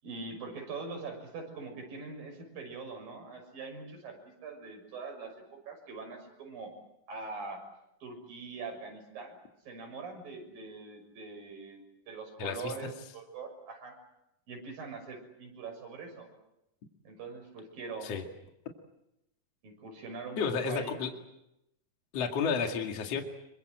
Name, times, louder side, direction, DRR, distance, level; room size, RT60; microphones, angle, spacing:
voice 1, 0.0-6.7 7.1-7.6 8.0-9.4 9.6-14.0 14.5-16.3 17.0-18.1 19.6-21.0, right 4 dB, 85° right, 4 dB, 8.1 m, -43 dB
voice 2, 12.4-12.7 18.0-18.2 20.4-21.1 22.1-23.2, left 6 dB, 50° left, 3 dB, 3.1 m, -31 dB
27.0 x 24.5 x 7.8 m, 0.85 s
omnidirectional pair, 3.9 m